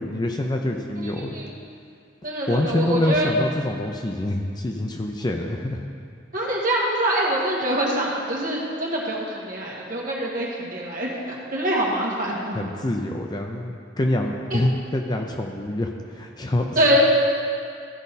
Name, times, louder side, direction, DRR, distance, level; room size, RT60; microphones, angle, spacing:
voice 1, 0.0-1.3 2.5-5.8 12.5-16.8, left 1 dB, 20° left, 2 dB, 0.5 m, -26 dB
voice 2, 1.0-1.6 2.2-3.3 6.3-12.6 14.5-14.6 16.7-17.0, right 1 dB, 45° right, -4 dB, 1.6 m, -24 dB
14.0 x 5.2 x 4.1 m, 2.2 s
head